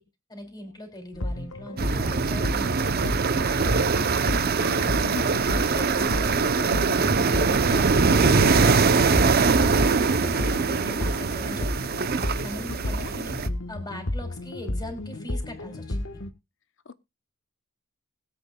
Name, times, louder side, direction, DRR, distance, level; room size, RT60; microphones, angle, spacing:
voice 1, 0.3-4.0 5.2-6.9 7.2-12.0 12.4-13.4 13.7-16.2, left 1 dB, 20° left, 3.0 m, -41 dB
sound 1, 1.1-16.3, left 1 dB, 85° left, 1.4 m, -32 dB
sound 2, 1.8-13.5, right 4 dB, 50° right, 0.7 m, -22 dB
voice 2, 4.6-5.3 12.7-13.1 16.9-17.0, left 6 dB, 65° left, 0.8 m, -39 dB
20.5 x 8.1 x 2.3 m
head